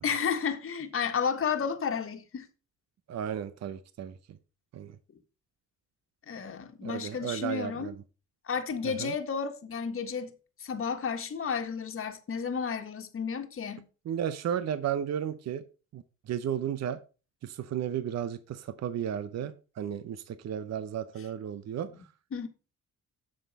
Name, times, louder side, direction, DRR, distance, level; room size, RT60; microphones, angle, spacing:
voice 1, 0.0-2.5 6.3-7.9 8.4-10.3 10.6-13.9 22.3-22.5, left 6 dB, 45° left, 1.5 m, -32 dB
voice 2, 3.1-4.1 4.7-5.0 6.8-7.9 8.8-9.1 14.1-15.6 15.9-17.0 17.4-21.9, right 9 dB, 60° right, 0.8 m, -34 dB
7.8 x 6.5 x 5.3 m
cardioid pair, 90°, 30 cm